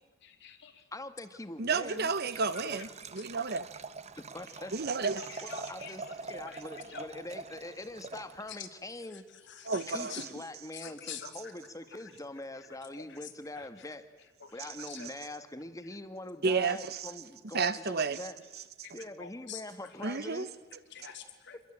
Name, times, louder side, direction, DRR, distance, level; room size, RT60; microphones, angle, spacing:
voice 1, 0.2-0.8 5.2-5.9 6.5-6.6 6.9-7.0 9.5-10.2 10.7-11.3 12.7-12.8 13.6-13.7 14.4-15.1 17.6-17.7 18.8-18.9 19.2-19.6 20.9-21.6, left 8 dB, 60° left, 2.9 m, -46 dB
voice 2, 0.9-2.1 2.6-2.8 4.2-4.7 5.4-9.3 9.9-14.1 14.5-18.4 18.9-20.5, left 2 dB, 15° left, 1.5 m, -43 dB
voice 3, 1.6-3.7 4.7-5.4 9.6-10.2 16.4-17.1 17.5-18.2 20.0-20.5, right 4 dB, 55° right, 1.1 m, -31 dB
Liquid, 1.8-8.7, right 4 dB, 35° right, 0.9 m, -45 dB
27.0 x 21.5 x 8.8 m
head